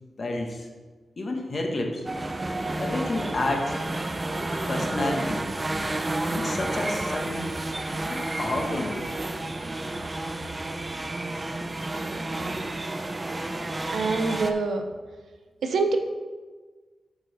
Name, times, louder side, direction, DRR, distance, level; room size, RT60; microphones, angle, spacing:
voice 1, 0.2-0.7 1.2-2.1 2.8-3.8 4.7-5.4 6.3-7.5 8.1-9.1, left 2 dB, 45° left, 2 dB, 1.3 m, -30 dB
sound 1, 2.0-14.5, right 2 dB, 25° right, 0.6 m, -31 dB
voice 2, 13.9-14.8 15.6-16.0, right 4 dB, 80° right, 5 dB, 0.8 m, -25 dB
7.8 x 6.3 x 4.2 m, 1.4 s
wide cardioid pair, 100°, 0 cm